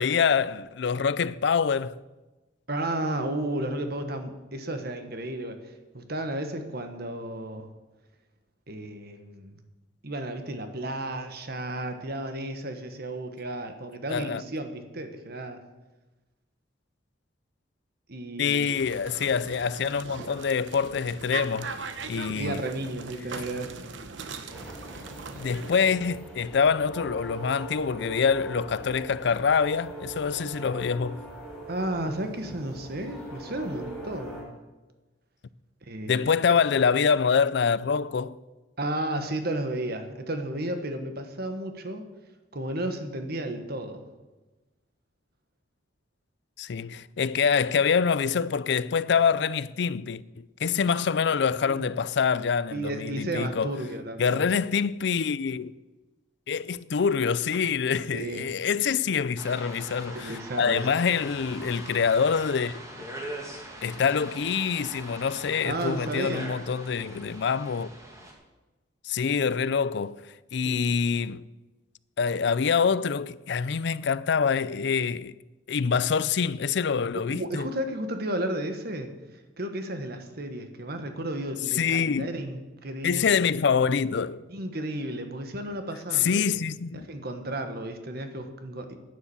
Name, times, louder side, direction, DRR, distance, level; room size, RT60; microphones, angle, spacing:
voice 1, 0.0-2.0 14.1-14.4 18.4-21.7 22.1-22.6 25.3-31.2 36.1-38.4 46.6-53.8 54.2-55.7 56.5-62.8 63.8-67.9 69.0-70.2 70.5-71.5 72.2-75.3 75.7-77.7 81.7-82.3 83.0-84.4 86.1-87.1, left 6 dB, 65° left, 0.4 m, -25 dB
voice 2, 2.7-7.7 8.7-9.6 10.0-15.6 18.1-18.7 22.3-24.3 24.9-25.1 31.7-34.5 35.8-36.6 38.8-42.1 42.5-44.1 51.7-51.9 52.7-54.4 58.1-58.5 60.1-60.9 65.6-66.5 70.6-70.7 77.3-83.4 84.5-86.5 86.9-89.0, right 1 dB, 55° right, 1.4 m, -33 dB
sound 1, 18.7-25.8, right 4 dB, 75° right, 1.0 m, -40 dB
sound 2, 24.5-34.4, right 2 dB, ahead, 4.5 m, -42 dB
sound 3, 59.4-68.3, right 1 dB, 15° right, 2.1 m, -42 dB
10.5 x 9.8 x 7.2 m
head